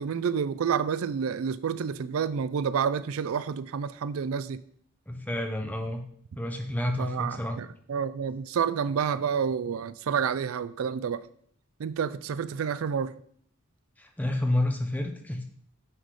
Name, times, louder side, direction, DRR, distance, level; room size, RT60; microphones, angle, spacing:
voice 1, 0.0-4.6 7.0-11.2 11.8-13.1, right 7 dB, 80° right, 0.4 m, -29 dB
voice 2, 5.1-6.0 6.4-7.6 14.0-15.4, left 1 dB, 5° left, 0.9 m, -29 dB
9.8 x 4.0 x 4.9 m
head